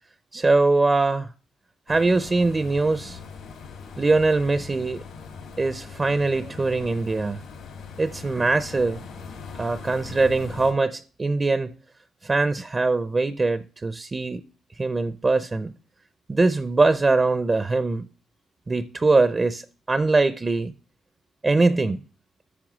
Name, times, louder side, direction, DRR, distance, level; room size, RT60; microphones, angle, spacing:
voice 1, 0.3-1.3 1.9-3.2 4.0-5.0 5.6-7.4 8.0-9.0 9.6-11.7 12.2-14.4 14.8-15.7 16.3-18.0 18.7-20.7 21.4-22.0, right 3 dB, 25° right, 0.5 m, -22 dB
sound 1, 1.9-10.7, left 5 dB, 75° left, 2.8 m, -40 dB
8.6 x 5.9 x 6.0 m
cardioid pair, 90°, 0 cm